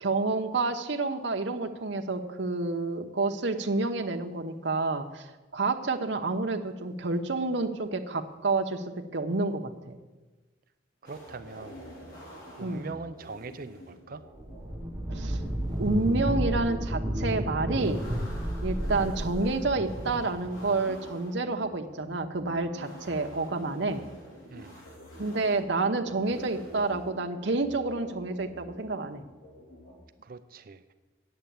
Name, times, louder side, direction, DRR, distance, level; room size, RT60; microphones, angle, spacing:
voice 1, 0.0-5.3 5.5-8.8 9.1-10.0 12.6-12.9 15.1-15.4 15.8-18.0 18.6-24.1 25.2-29.2, right 3 dB, 65° right, 5 dB, 0.9 m, -29 dB
sound 1, 11.0-29.9, equal, 85° left, 4.2 m, -48 dB
voice 2, 11.0-11.8 12.6-14.2 24.5-24.7 30.2-30.9, right 4 dB, 50° right, 11 dB, 0.5 m, -42 dB
sound 2, 14.4-20.8, right 1 dB, 10° right, 0.7 m, -32 dB
9.1 x 7.8 x 8.6 m, 1.2 s
head